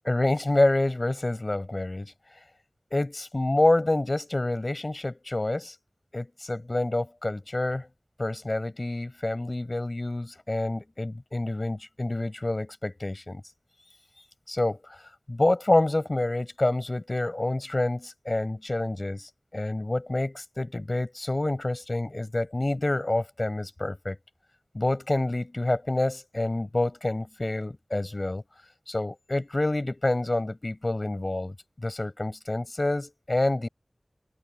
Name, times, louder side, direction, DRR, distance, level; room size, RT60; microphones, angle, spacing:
voice 1, 0.0-2.1 2.9-5.7 6.1-7.9 8.2-13.4 14.5-14.8 15.3-24.2 24.7-28.4 28.9-33.7, left 2 dB, 45° left, 5.4 m, -27 dB
wide cardioid pair, 55°, 0 cm